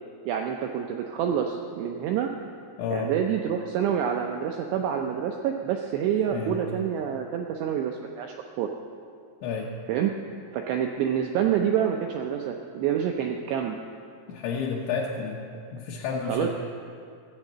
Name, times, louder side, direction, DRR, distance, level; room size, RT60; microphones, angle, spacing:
voice 1, 0.3-2.3 2.9-8.7 9.9-10.1 10.5-13.8 16.3-16.5, right 9 dB, 85° right, 3 dB, 2.4 m, -27 dB
voice 2, 2.8-3.1 6.3-6.9 9.4-9.8 14.3-16.5, left 5 dB, 75° left, -3 dB, 3.1 m, -31 dB
14.5 x 7.2 x 7.4 m, 2.3 s
omnidirectional pair, 5.6 m